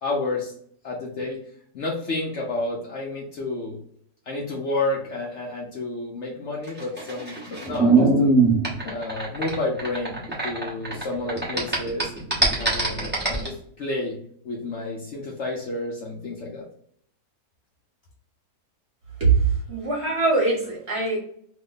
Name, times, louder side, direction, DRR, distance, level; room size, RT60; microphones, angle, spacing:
voice 1, 0.0-0.5 0.8-1.4 1.7-3.8 4.3-8.3 8.8-12.1 12.5-13.0 13.3-14.2 14.4-16.6, left 2 dB, 60° left, -2 dB, 0.8 m, -30 dB
sound 1, 6.7-11.0 11.3-13.5, right 3 dB, 10° right, 0.5 m, -21 dB
voice 2, 19.7-21.2, right 2 dB, 45° right, -3 dB, 1.2 m, -23 dB
2.9 x 2.1 x 3.8 m, 0.65 s
omnidirectional pair, 1.6 m